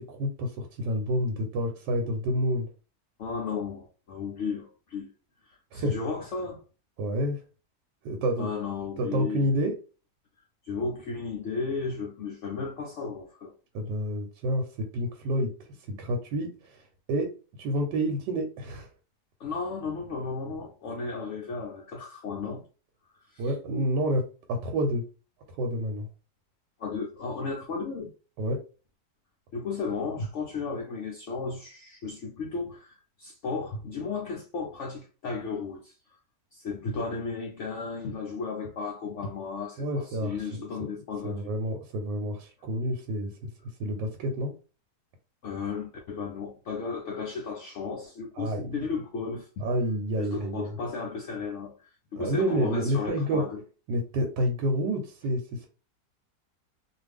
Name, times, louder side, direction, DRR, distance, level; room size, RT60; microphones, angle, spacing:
voice 1, 0.0-2.7 5.7-5.9 7.0-7.4 8.0-8.5 9.0-9.7 13.7-15.5 15.9-16.8 17.1-17.3 17.6-18.9 23.4-25.0 25.6-26.1 28.4-28.6 39.8-40.9 41.2-43.3 43.8-44.5 48.4-48.9 49.6-50.7 52.2-53.4 53.9-55.7, equal, 90° right, 1.2 m, -29 dB
voice 2, 3.2-5.1 5.4-6.6 8.4-9.7 10.6-13.5 19.4-22.6 23.2-23.5 26.8-28.1 29.5-36.2 36.5-41.4 45.4-49.7 50.2-53.6, left 4 dB, 75° left, 0.6 m, -34 dB
2.5 x 2.4 x 3.3 m
omnidirectional pair, 1.8 m